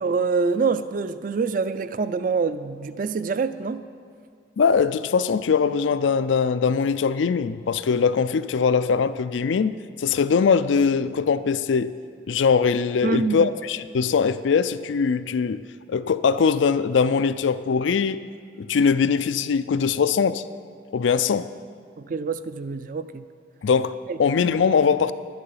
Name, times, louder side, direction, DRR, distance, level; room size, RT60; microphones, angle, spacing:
voice 1, 0.0-3.8 13.0-13.5 22.0-23.2 24.1-24.2, right 4 dB, 45° right, 13 dB, 0.4 m, -25 dB
voice 2, 4.6-11.9 12.3-15.6 15.9-18.2 18.6-20.4 20.9-21.5 23.6-25.1, left 5 dB, 90° left, 14 dB, 0.4 m, -21 dB
11.0 x 9.7 x 5.6 m, 2.2 s
head